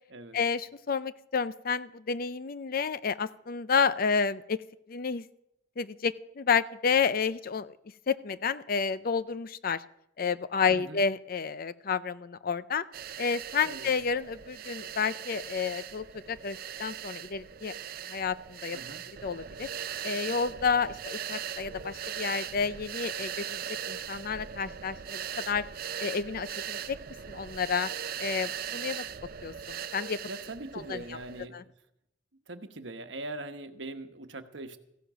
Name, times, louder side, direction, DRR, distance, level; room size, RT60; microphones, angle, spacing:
voice 1, 0.3-4.6 4.9-5.3 5.8-7.8 8.1-9.8 10.2-12.8 13.2-17.7 18.1-18.8 19.2-19.7 20.0-23.6 23.9-25.6 26.0-27.0 27.3-27.9 28.2-29.0 29.4-30.2 30.7-31.0 31.5-31.6, left 5 dB, 50° left, 15 dB, 0.5 m, -30 dB
voice 2, 10.7-11.0 13.7-13.9 18.7-19.0 30.3-31.7 32.5-34.8, right 2 dB, 75° right, 8 dB, 1.1 m, -41 dB
sound 1, 12.9-31.5, right 8 dB, 55° right, 0.5 m, -39 dB
15.0 x 10.5 x 6.1 m, 0.80 s
head